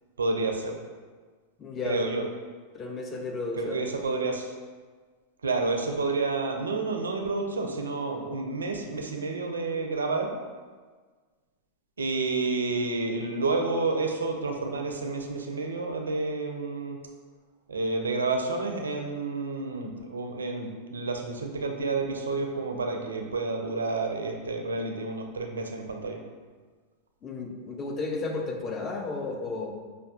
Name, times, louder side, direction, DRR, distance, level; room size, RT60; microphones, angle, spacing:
voice 1, 0.2-0.7 1.8-2.2 3.6-4.5 5.4-10.3 12.0-17.0 17.7-26.2, right 3 dB, 70° right, 3 dB, 0.4 m, -30 dB
voice 2, 1.6-2.0 2.7-3.8 27.2-29.7, left 3 dB, 25° left, 2 dB, 0.5 m, -33 dB
5.2 x 2.2 x 2.3 m, 1.5 s
figure-of-eight pair, 90°, 0 cm